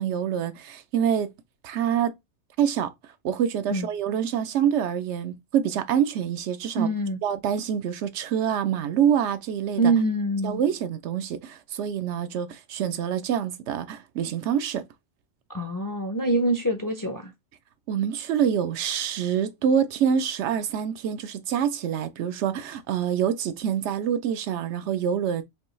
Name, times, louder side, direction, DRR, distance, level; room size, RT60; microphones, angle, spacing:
voice 1, 0.0-1.3 1.6-2.1 2.6-2.9 3.2-6.9 7.2-9.8 10.4-14.8 17.9-25.4, right 8 dB, 80° right, 0.9 m, -26 dB
voice 2, 6.8-7.2 9.8-10.6 15.5-17.3, right 2 dB, 30° left, 0.4 m, -25 dB
5.3 x 2.3 x 3.0 m
omnidirectional pair, 1.2 m